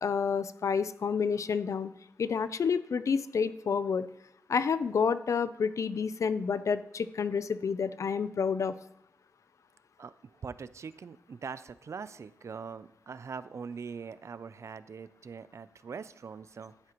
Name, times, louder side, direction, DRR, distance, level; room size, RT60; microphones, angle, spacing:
voice 1, 0.0-1.9 2.2-4.1 4.5-8.7, left 6 dB, 70° left, 14 dB, 0.4 m, -29 dB
voice 2, 10.4-16.7, right 5 dB, 65° right, 15 dB, 0.4 m, -42 dB
11.5 x 9.8 x 3.0 m, 0.79 s
wide cardioid pair, 115°, 5 cm